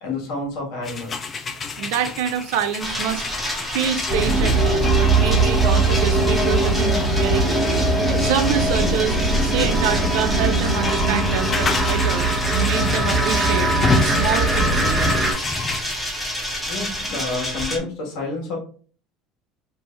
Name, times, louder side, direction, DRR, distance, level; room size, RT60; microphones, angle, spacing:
voice 1, 0.0-1.2 16.7-18.6, left 3 dB, 70° left, -1 dB, 1.5 m, -29 dB
sound 1, 0.8-15.8, left 4 dB, 30° left, 0.5 m, -30 dB
voice 2, 1.8-15.2, right 8 dB, 80° right, 9 dB, 0.5 m, -27 dB
sound 2, 2.8-17.8, equal, 5° left, 1.3 m, -29 dB
sound 3, 4.1-15.3, right 2 dB, 25° right, 1.2 m, -20 dB
3.2 x 2.6 x 3.3 m, 0.42 s
supercardioid pair, 105°, 0 cm